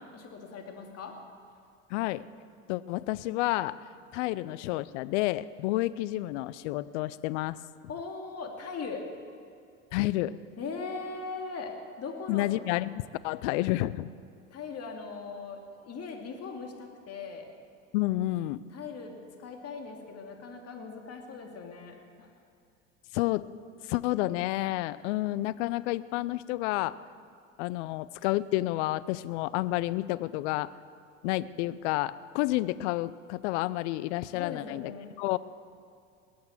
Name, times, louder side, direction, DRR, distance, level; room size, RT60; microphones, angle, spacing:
voice 1, 0.1-1.1 7.9-9.0 10.6-11.7 12.0-12.5 14.5-17.5 18.7-22.3 34.3-35.2, left 4 dB, 40° left, 2 dB, 2.7 m, -40 dB
voice 2, 1.9-2.2 2.7-3.8 4.1-7.6 9.9-10.4 12.3-14.1 17.9-18.6 23.1-23.5 23.9-27.0 27.6-30.7 31.2-34.9 35.2-35.4, left 17 dB, 65° left, 17 dB, 0.6 m, -30 dB
20.5 x 8.7 x 7.3 m, 2.4 s
hypercardioid pair, 75°, 38 cm